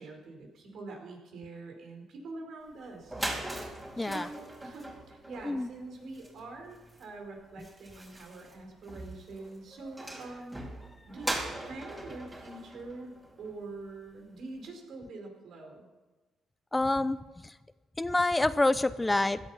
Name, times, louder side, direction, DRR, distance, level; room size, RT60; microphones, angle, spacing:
voice 1, 0.0-3.2 4.0-10.7 11.1-13.1 13.4-15.9, right 3 dB, 70° right, 3 dB, 4.8 m, -44 dB
sound 1, 2.7-2.8 3.0-13.8, right 1 dB, 15° right, 4.1 m, -41 dB
voice 2, 4.0-4.3 5.4-5.7 16.7-17.2 17.4-17.5 18.0-19.4, left 2 dB, 15° left, 14 dB, 0.6 m, -27 dB
16.5 x 12.5 x 5.8 m, 1.2 s
cardioid pair, 90°, 0 cm